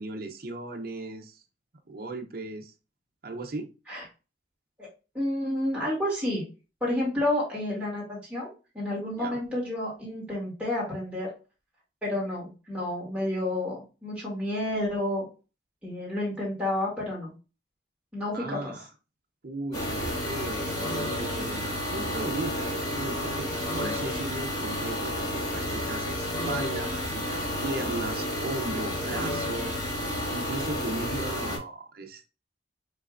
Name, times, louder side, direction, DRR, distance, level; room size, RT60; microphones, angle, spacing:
voice 1, 0.0-1.4 1.9-2.7 3.2-3.7 9.2-9.4 18.3-18.9 19.4-23.5 23.7-30.0 30.3-32.3, right 2 dB, 50° right, 4 dB, 0.7 m, -36 dB
voice 2, 5.1-6.4 6.8-8.5 8.7-11.3 12.0-15.3 15.8-17.4 18.1-18.7, left 1 dB, 5° right, -6 dB, 2.4 m, -30 dB
sound 1, 19.7-31.6, left 1 dB, 20° left, 2.1 m, -31 dB
5.4 x 3.4 x 2.5 m, 0.32 s
head